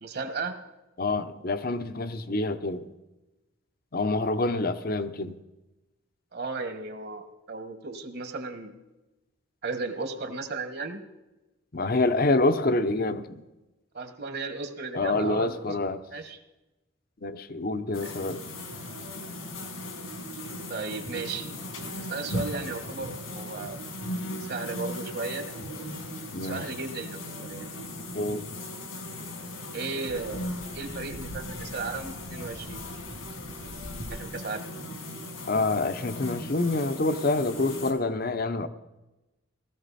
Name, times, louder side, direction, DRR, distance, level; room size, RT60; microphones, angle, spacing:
voice 1, 0.0-0.6 6.3-8.7 9.6-11.0 13.9-15.8 16.1-16.4 18.0-18.4 20.7-21.5 22.0-23.8 24.4-25.5 26.4-27.7 29.7-32.8 34.1-34.7, right 4 dB, 50° right, 7 dB, 1.5 m, -35 dB
voice 2, 1.0-2.9 3.9-5.3 11.7-13.4 14.9-16.0 17.2-18.4 26.3-26.6 28.1-28.5 35.5-38.7, left 2 dB, 45° left, 11 dB, 0.8 m, -27 dB
sound 1, 17.9-37.9, left 1 dB, 80° left, 3.1 m, -38 dB
18.0 x 14.0 x 4.2 m, 1.0 s
head